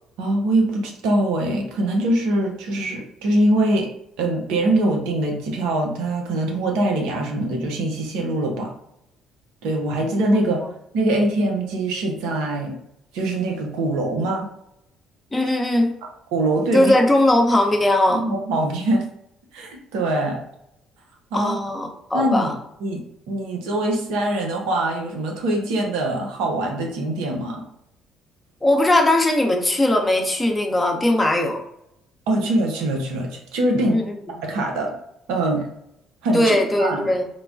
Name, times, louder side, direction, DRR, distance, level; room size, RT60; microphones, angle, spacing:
voice 1, 0.2-3.9 4.2-8.7 9.6-10.6 10.9-12.8 13.1-14.5 16.3-16.9 18.1-19.0 19.5-20.4 21.3-21.6 22.1-22.5 22.8-23.0 23.3-27.6 32.3-34.0 34.4-34.9 35.3-35.6 36.2-37.1, right 1 dB, 75° right, 1 dB, 0.6 m, -23 dB
voice 2, 15.3-16.0 16.7-18.2 21.3-22.6 28.6-31.6 33.9-34.2 36.3-37.2, left 1 dB, 15° left, 2 dB, 0.7 m, -19 dB
3.1 x 2.2 x 2.5 m, 0.78 s
hypercardioid pair, 55°, 0 cm